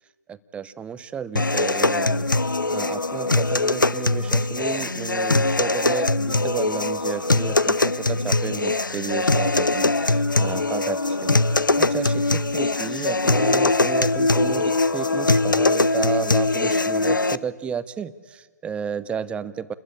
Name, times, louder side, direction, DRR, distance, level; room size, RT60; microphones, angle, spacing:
voice 1, 0.3-2.3 2.7-11.4 11.8-19.7, right 7 dB, 10° right, 15 dB, 0.8 m, -32 dB
sound 1, 1.4-17.4, left 2 dB, 90° left, 0.8 m, -21 dB
29.0 x 21.0 x 8.7 m, 1.5 s
figure-of-eight pair, 130°, 10 cm